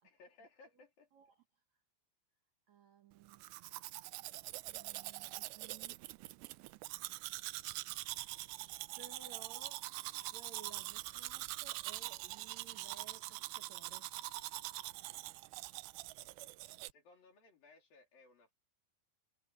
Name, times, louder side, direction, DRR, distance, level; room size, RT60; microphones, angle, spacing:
voice 1, 0.0-1.1 16.9-18.5, left 3 dB, 50° left, 5.2 m, -62 dB
voice 2, 1.1-1.4 2.7-3.4 4.7-6.0 8.9-9.9 10.3-14.1, right 7 dB, 70° right, 1.7 m, -58 dB
Domestic sounds home sounds, 3.3-16.9, right 19 dB, 90° right, 2.4 m, -44 dB
omnidirectional pair, 5.6 m